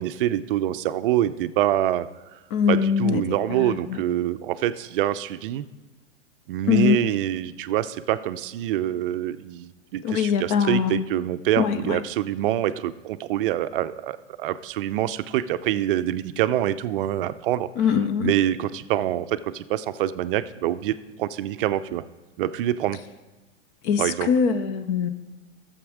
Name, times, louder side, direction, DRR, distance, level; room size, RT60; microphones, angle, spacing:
voice 1, 0.0-2.1 2.7-5.6 6.5-22.0 22.4-23.0 24.0-24.3, right 12 dB, 45° right, 12 dB, 0.5 m, -25 dB
voice 2, 2.5-3.2 3.5-4.0 6.7-7.0 10.0-11.0 11.6-12.0 17.8-18.3 23.9-24.0 24.3-25.1, left 7 dB, 25° left, 12 dB, 0.4 m, -22 dB
12.5 x 7.2 x 4.8 m, 1.2 s
hypercardioid pair, 120°, 37 cm